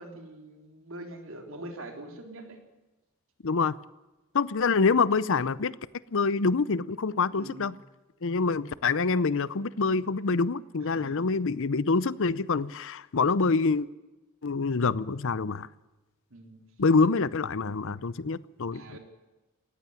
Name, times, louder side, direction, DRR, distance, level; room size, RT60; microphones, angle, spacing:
voice 1, 0.0-2.6 7.3-7.7 10.8-11.2 16.3-16.6 18.7-19.0, right 1 dB, 65° right, 4 dB, 3.7 m, -44 dB
voice 2, 3.4-3.7 4.3-5.7 6.1-7.7 8.2-13.9 14.4-15.7 16.8-18.8, left 4 dB, 60° left, 18 dB, 0.7 m, -26 dB
18.5 x 15.5 x 9.7 m, 1.1 s
head